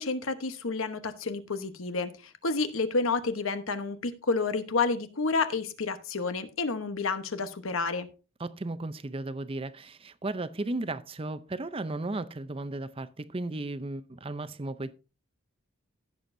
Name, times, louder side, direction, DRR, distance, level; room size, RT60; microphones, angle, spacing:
voice 1, 0.0-8.1, left 4 dB, 80° left, 1.1 m, -30 dB
voice 2, 8.4-14.9, right 2 dB, 25° right, 0.5 m, -35 dB
16.0 x 7.0 x 2.6 m
head